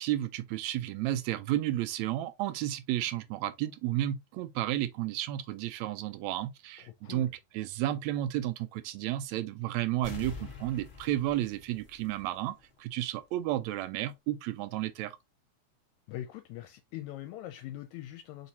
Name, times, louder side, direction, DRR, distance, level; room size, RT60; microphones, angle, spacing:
voice 1, 0.0-15.2, right 14 dB, 80° right, 1.8 m, -32 dB
sound 1, 10.0-12.6 13.0-13.1, left 5 dB, 65° left, 0.5 m, -45 dB
voice 2, 16.1-18.5, left 13 dB, 80° left, 1.9 m, -42 dB
4.7 x 4.1 x 2.7 m
omnidirectional pair, 3.3 m